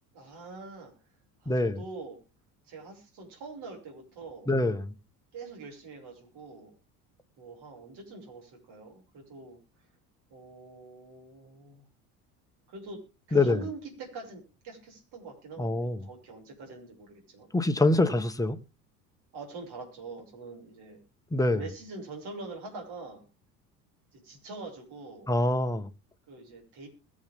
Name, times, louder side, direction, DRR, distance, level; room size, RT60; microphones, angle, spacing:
voice 1, 0.1-0.9 1.4-2.2 2.7-4.5 5.3-6.7 7.4-9.6 10.3-11.8 12.7-13.0 13.3-17.5 19.3-21.0 21.5-23.3 24.1-25.3 26.3-26.9, right 3 dB, 55° right, 6.6 m, -44 dB
voice 2, 1.5-1.8 4.5-4.9 13.3-13.6 15.6-16.0 17.5-18.6 21.3-21.6 25.3-25.9, left 2 dB, 5° left, 1.5 m, -25 dB
22.0 x 7.5 x 3.7 m
hypercardioid pair, 65°, 47 cm